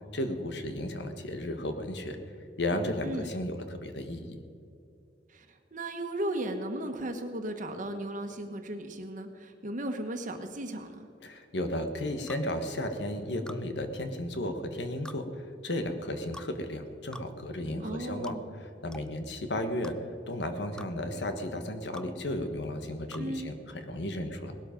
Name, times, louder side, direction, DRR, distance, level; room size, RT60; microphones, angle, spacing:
voice 1, 0.1-2.2 2.6-4.4 11.2-19.9 20.3-24.5, left 1 dB, 70° left, 7 dB, 1.4 m, -34 dB
voice 2, 5.7-11.1 17.8-18.6 23.1-23.5, right 1 dB, 45° right, 6 dB, 1.4 m, -36 dB
sound 1, 12.3-12.5 13.5-13.6 15.0-15.2 16.3-16.5 17.1-17.3 18.2-18.4 18.9-19.1 19.8-20.0 20.8-20.9 21.9-22.1 23.1-23.3, left 1 dB, 5° left, 0.4 m, -45 dB
19.0 x 12.0 x 5.2 m, 2.5 s
head